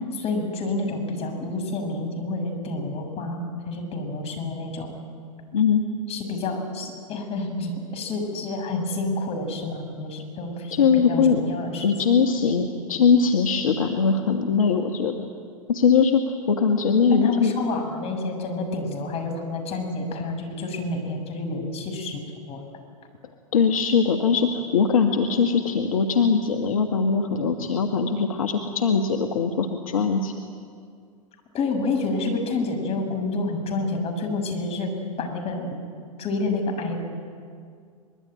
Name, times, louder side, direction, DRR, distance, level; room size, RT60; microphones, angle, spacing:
voice 1, 0.1-4.9 6.1-11.9 17.1-22.6 31.5-34.9 35.2-35.8 36.2-37.0, left 2 dB, 35° left, 4 dB, 6.3 m, -29 dB
voice 2, 5.5-5.8 10.7-11.4 11.8-15.1 15.7-16.2 16.5-17.5 23.5-30.3, left 5 dB, 70° left, 5 dB, 1.7 m, -21 dB
24.0 x 22.0 x 9.1 m, 2.2 s
figure-of-eight pair, 95°, 18 cm